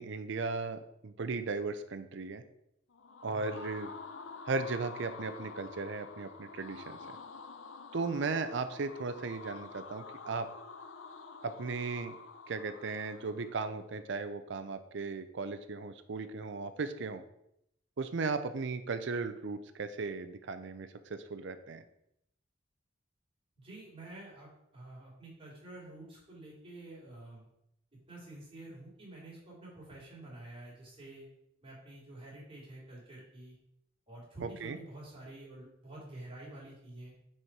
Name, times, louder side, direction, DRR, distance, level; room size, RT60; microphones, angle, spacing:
voice 1, 0.0-2.4 3.2-3.9 4.5-7.0 7.9-10.5 11.4-12.1 12.5-17.2 18.0-21.8 34.4-34.8, right 4 dB, 70° right, 10 dB, 0.5 m, -36 dB
sound 1, 2.9-13.8, left 4 dB, 80° left, 0.6 m, -48 dB
voice 2, 3.3-3.6 23.6-27.5 28.1-31.3 31.6-33.6 34.1-37.1, right 2 dB, 30° right, -4 dB, 2.7 m, -49 dB
6.4 x 4.4 x 4.6 m, 0.78 s
head